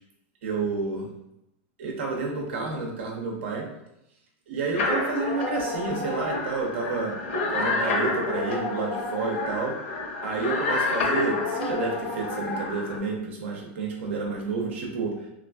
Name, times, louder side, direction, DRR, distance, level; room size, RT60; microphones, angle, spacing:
voice 1, 0.4-1.1 1.8-3.7 4.5-7.1 7.5-9.7 10.2-15.3, right 4 dB, 70° right, 1 dB, 0.9 m, -30 dB
sound 1, 4.8-13.0, left 3 dB, 75° left, 0.7 m, -29 dB
3.7 x 2.6 x 2.3 m, 0.83 s
supercardioid pair, 165°, 7 cm